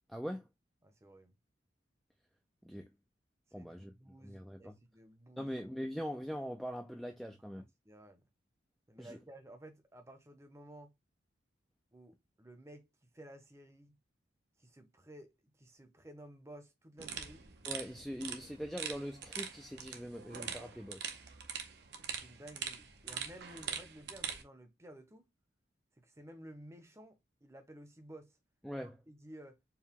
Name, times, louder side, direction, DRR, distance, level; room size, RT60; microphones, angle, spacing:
voice 1, 0.1-0.5 2.6-2.9 3.5-3.9 4.2-4.8 5.4-7.7 9.0-9.2 17.7-21.2 28.6-28.9, equal, ahead, 0.3 m, -42 dB
voice 2, 0.8-1.3 3.5-5.6 7.6-8.2 8.9-10.9 11.9-12.9 13.1-14.0 14.6-17.5 22.0-25.3 26.0-28.4 28.8-29.6, right 1 dB, 15° right, 0.7 m, -54 dB
sound 1, 17.0-24.4, right 7 dB, 60° right, 0.7 m, -43 dB
4.6 x 2.2 x 3.5 m
head